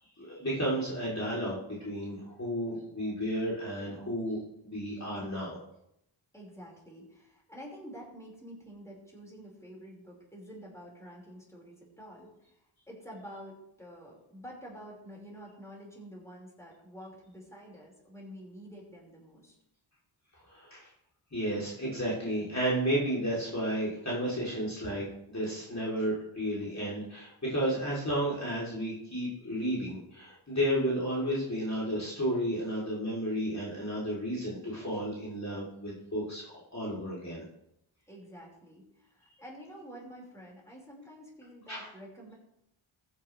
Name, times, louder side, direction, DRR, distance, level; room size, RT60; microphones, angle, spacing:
voice 1, 0.2-5.6 20.5-20.9 21.3-37.4 41.7-41.9, equal, 35° left, -6 dB, 3.6 m, -32 dB
voice 2, 6.3-12.6 12.9-19.5 38.1-42.3, equal, 5° left, -3 dB, 5.3 m, -48 dB
15.0 x 9.8 x 3.4 m, 0.80 s
cardioid pair, 60°, 49 cm